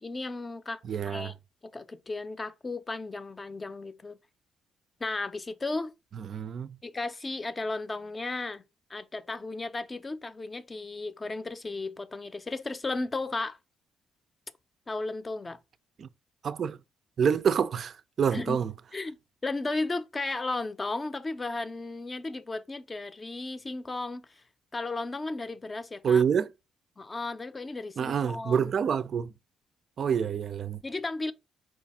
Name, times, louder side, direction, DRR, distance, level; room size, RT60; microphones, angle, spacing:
voice 1, 0.0-1.3 1.7-4.2 5.0-5.9 6.8-8.6 8.9-13.6 14.9-15.6 18.3-18.6 18.9-24.4 24.7-26.2 27.0-28.7 30.8-31.3, left 3 dB, 25° left, 0.5 m, -35 dB
voice 2, 0.8-1.3 6.2-6.8 16.0-16.1 16.4-16.8 17.2-18.7 26.0-26.5 28.0-29.3 30.0-30.8, right 7 dB, 55° right, 0.4 m, -27 dB
4.6 x 2.4 x 4.1 m
cardioid pair, 90°, 0 cm